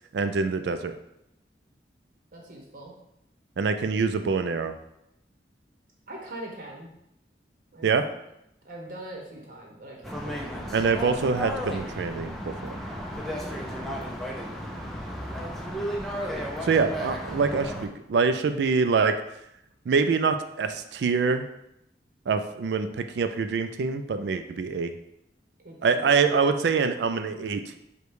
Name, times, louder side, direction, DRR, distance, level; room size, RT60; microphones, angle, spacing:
voice 1, 0.1-0.9 3.6-4.7 7.8-8.0 10.7-12.8 16.6-19.2 19.9-21.4 22.3-24.9 25.8-27.8, right 5 dB, 70° right, 9 dB, 0.4 m, -25 dB
voice 2, 2.3-2.9 6.1-6.9 7.7-7.9 8.6-10.9 13.4-14.9 25.6-26.3, right 1 dB, 50° right, -1 dB, 1.1 m, -43 dB
sound 1, 10.0-17.9, equal, ahead, 0.5 m, -34 dB
5.0 x 2.3 x 4.6 m, 0.81 s
head